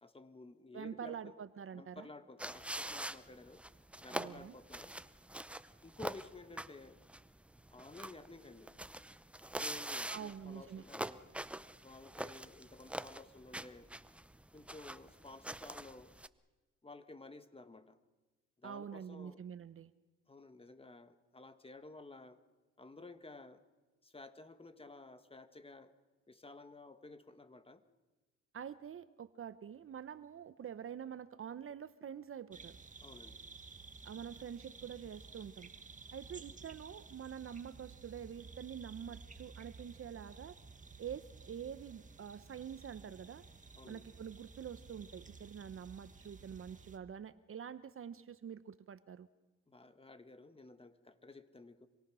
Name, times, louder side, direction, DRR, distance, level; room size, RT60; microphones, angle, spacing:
voice 1, 0.0-1.4 1.7-3.6 4.0-5.0 5.8-7.0 7.7-8.7 9.5-11.2 11.8-13.9 14.5-16.1 16.8-18.0 18.6-19.4 20.3-22.4 22.8-23.6 24.0-25.9 26.3-27.8 33.0-33.4 43.8-44.1 49.7-51.9, left 3 dB, 20° left, 10 dB, 1.6 m, -53 dB
voice 2, 0.7-2.1 4.1-4.5 10.1-10.8 18.6-19.9 28.5-32.8 34.0-35.7 36.1-40.6 41.0-43.4 43.9-49.3, right 8 dB, 45° right, 14 dB, 0.9 m, -46 dB
sound 1, 2.4-16.3, right 1 dB, 5° right, 0.7 m, -45 dB
sound 2, 32.5-47.0, right 4 dB, 25° right, 1.7 m, -54 dB
27.0 x 23.0 x 6.2 m, 1.2 s
cardioid pair, 90°, 30 cm